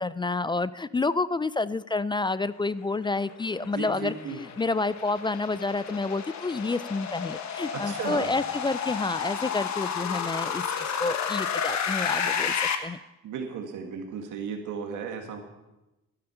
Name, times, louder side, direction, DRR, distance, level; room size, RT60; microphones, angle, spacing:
voice 1, 0.0-13.0, left 3 dB, 15° left, 17 dB, 0.3 m, -29 dB
sound 1, 3.2-12.7, left 7 dB, 65° left, 1.4 m, -31 dB
voice 2, 3.6-4.4 7.7-8.4 13.2-15.4, right 6 dB, 85° right, 3 dB, 1.9 m, -35 dB
12.5 x 11.5 x 5.7 m, 0.99 s
cardioid pair, 90°, 30 cm